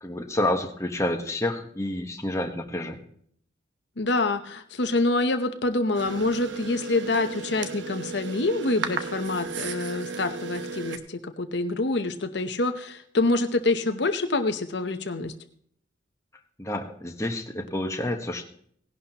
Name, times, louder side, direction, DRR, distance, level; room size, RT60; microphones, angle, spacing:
voice 1, 0.0-3.0 16.6-18.4, left 1 dB, 15° left, 3 dB, 1.2 m, -29 dB
voice 2, 4.0-15.3, left 2 dB, 65° left, 7 dB, 0.9 m, -26 dB
sound 1, 5.9-11.0, right 5 dB, 70° right, 1.0 m, -35 dB
17.0 x 11.5 x 3.0 m, 0.62 s
head